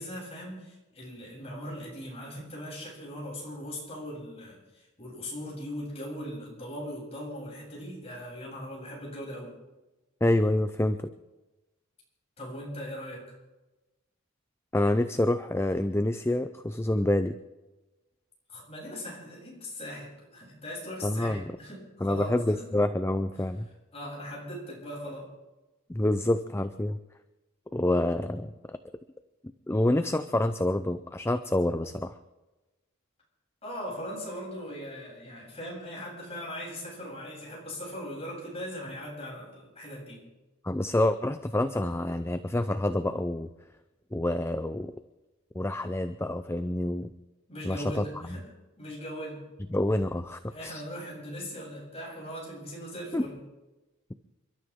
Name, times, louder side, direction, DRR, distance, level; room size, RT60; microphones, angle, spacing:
voice 1, 0.0-9.5 12.4-13.2 18.5-22.7 23.9-25.3 33.6-40.2 47.5-48.4 48.8-49.4 50.5-53.4, equal, 30° left, -4 dB, 7.9 m, -39 dB
voice 2, 10.2-11.1 14.7-17.4 21.0-21.4 22.0-23.7 25.9-27.0 27.7-28.8 29.7-32.1 40.6-43.5 44.1-44.9 45.5-47.1 47.6-48.1 49.7-50.8 53.1-53.2, left 1 dB, 10° left, 10 dB, 0.5 m, -27 dB
29.0 x 12.5 x 3.7 m, 1.1 s
head